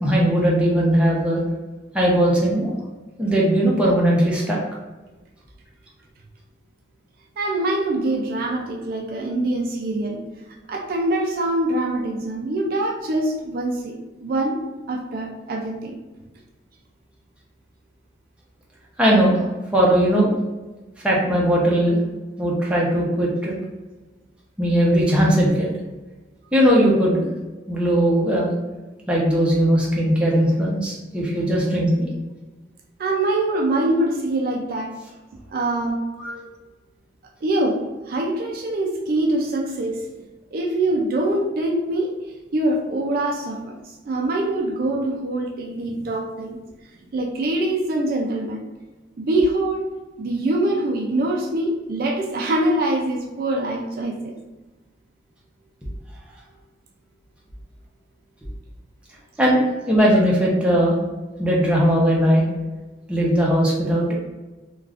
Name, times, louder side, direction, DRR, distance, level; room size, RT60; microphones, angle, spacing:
voice 1, 0.0-1.4 1.9-2.7 3.2-4.6 19.0-19.4 19.7-20.3 21.0-22.0 22.4-23.5 24.6-25.7 26.5-27.3 27.7-28.5 29.1-32.1 36.2-36.5 59.4-61.0 61.4-62.4 63.1-64.1, equal, 5° right, -4 dB, 0.6 m, -19 dB
voice 2, 7.4-10.2 10.7-16.0 33.0-35.0 35.5-36.0 37.4-40.1 40.5-42.2 42.5-46.6 47.1-48.6 49.2-49.9 50.2-54.3, right 1 dB, 55° right, 1 dB, 0.4 m, -24 dB
2.4 x 2.3 x 3.3 m, 1.2 s
head